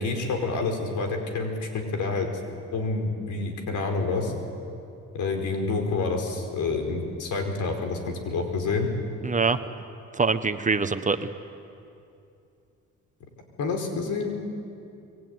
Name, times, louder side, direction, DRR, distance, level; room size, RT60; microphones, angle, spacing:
voice 1, 0.0-2.3 2.7-4.3 5.1-8.9 13.6-14.4, left 3 dB, 75° left, 4 dB, 4.8 m, -28 dB
voice 2, 9.2-9.6 10.1-11.3, right 4 dB, 25° right, 9 dB, 1.3 m, -24 dB
25.5 x 22.5 x 9.7 m, 2.6 s
cardioid pair, 90°, 30 cm